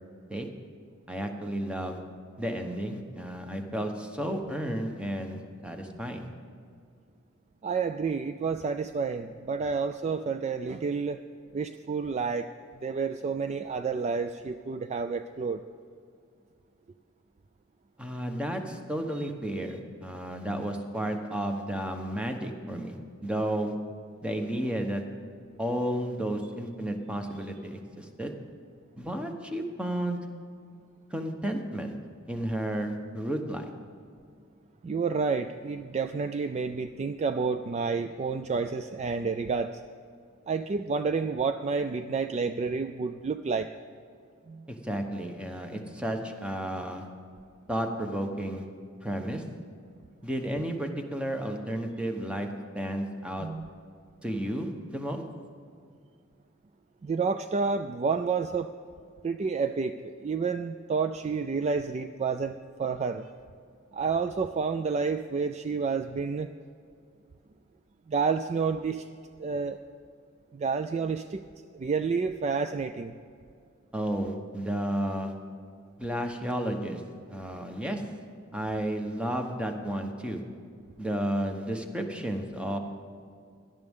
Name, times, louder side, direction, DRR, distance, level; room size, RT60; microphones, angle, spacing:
voice 1, 1.1-2.0 2.4-6.3 18.0-23.0 23.2-23.7 24.2-25.0 25.6-28.3 29.0-30.2 31.1-31.9 32.3-33.6 44.8-47.0 47.7-48.6 49.0-49.4 50.2-52.5 52.7-53.5 54.2-55.2 73.9-75.3 76.0-77.0 77.3-78.0 78.5-80.4 81.0-82.8, right 1 dB, 5° right, 4 dB, 1.0 m, -32 dB
voice 2, 7.6-11.2 11.5-12.5 12.8-15.6 19.2-19.3 34.8-39.8 40.5-43.7 44.5-44.7 53.4-53.7 57.0-58.7 59.2-63.3 63.9-66.5 68.1-69.1 69.4-69.8 70.5-71.4 71.8-73.1, right 5 dB, 30° right, 9 dB, 0.3 m, -29 dB
17.0 x 11.5 x 3.6 m, 2.3 s
head